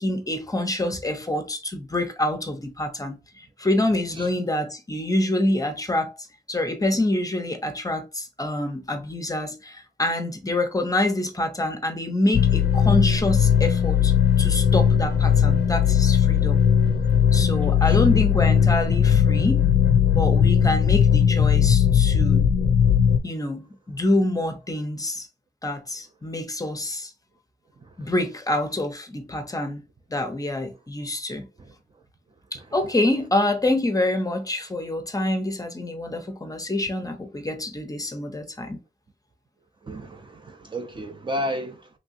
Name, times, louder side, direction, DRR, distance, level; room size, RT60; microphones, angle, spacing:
voice 1, 0.0-6.1 6.5-16.6 17.3-19.7 20.1-22.5 23.2-25.3 25.6-27.1 28.0-29.8 30.1-31.5 32.5-38.8, left 1 dB, 20° left, 0.5 m, -26 dB
sound 1, 12.3-23.2, left 8 dB, 75° left, 0.4 m, -18 dB
voice 2, 17.4-18.2 27.8-28.1 31.6-31.7 39.8-41.9, equal, 30° right, 0.4 m, -33 dB
3.2 x 2.6 x 2.5 m
wide cardioid pair, 155°, 18 cm